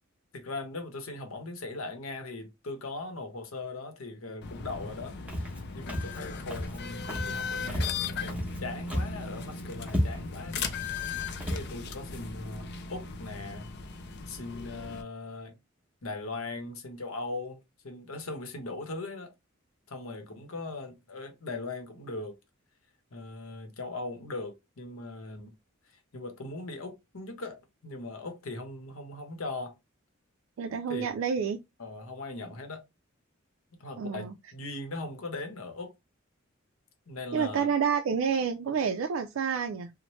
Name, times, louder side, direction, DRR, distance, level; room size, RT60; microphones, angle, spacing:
voice 1, 0.3-10.7 11.5-13.7 14.3-15.6 16.0-19.3 19.9-22.4 23.1-25.5 26.1-29.8 30.9-31.0 31.8-32.8 33.8-35.9 37.1-37.7, left 2 dB, 90° left, 0.8 m, -39 dB
sound 1, 4.4-15.0, left 5 dB, 55° left, 0.4 m, -37 dB
Walk footsteps, 5.3-5.6 5.9-6.2 6.5-6.8 7.1-7.4 7.7-8.6 8.9-9.2 9.5-9.6 9.9-10.4 10.9-11.1 11.4-11.7, equal, 5° right, 0.8 m, -32 dB
voice 2, 30.6-31.6 34.0-34.3 37.3-39.9, right 6 dB, 70° right, 0.3 m, -29 dB
3.0 x 2.1 x 2.9 m
head